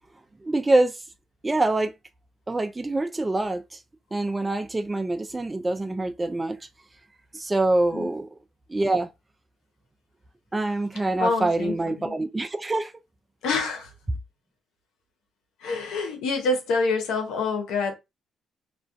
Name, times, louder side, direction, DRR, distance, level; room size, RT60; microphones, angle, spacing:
voice 1, 0.4-1.0 1.4-1.9 2.5-3.8 4.1-6.6 7.3-8.3 8.7-9.1 10.5-12.9, right 2 dB, 20° right, 0.3 m, -25 dB
voice 2, 11.2-12.1 13.4-13.9 15.6-17.9, left 3 dB, 90° left, 0.7 m, -26 dB
2.3 x 2.1 x 2.5 m
cardioid pair, 90°, 0 cm